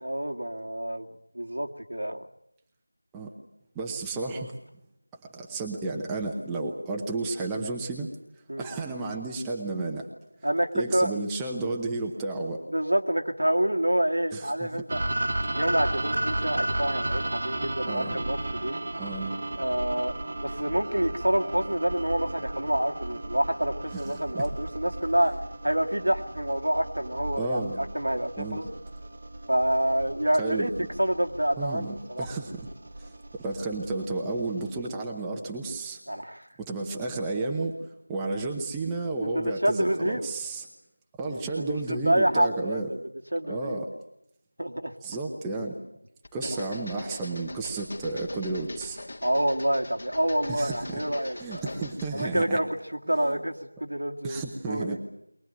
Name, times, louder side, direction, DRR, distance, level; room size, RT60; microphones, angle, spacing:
voice 1, 0.0-1.1 1.3-2.3 8.5-8.7 10.4-11.1 12.7-15.0 15.5-18.8 19.6-20.1 20.4-25.3 25.6-28.7 29.5-30.7 31.0-32.2 36.1-36.5 39.2-40.3 41.2-43.0 43.3-43.8 44.6-44.9 49.2-51.6 52.1-53.5 53.8-55.0, right 1 dB, 90° right, 4 dB, 2.2 m, -27 dB
voice 2, 3.7-4.5 5.3-8.1 8.6-10.1 10.7-12.6 14.3-14.7 17.9-18.2 19.0-19.4 23.9-24.5 27.4-27.8 28.4-28.6 30.4-30.7 31.6-32.7 33.0-36.0 36.6-37.8 38.1-40.7 41.2-42.9 43.5-43.8 45.0-45.8 46.3-49.0 50.5-51.0 51.4-52.6 53.1-53.4 54.2-55.0, right 3 dB, 5° right, -1 dB, 0.9 m, -32 dB
sound 1, 14.9-34.9, right 1 dB, 40° right, 1.3 m, -34 dB
sound 2, 46.2-52.4, left 2 dB, 35° left, 2.3 m, -42 dB
23.0 x 19.5 x 9.2 m, 0.79 s
figure-of-eight pair, 175°, 0 cm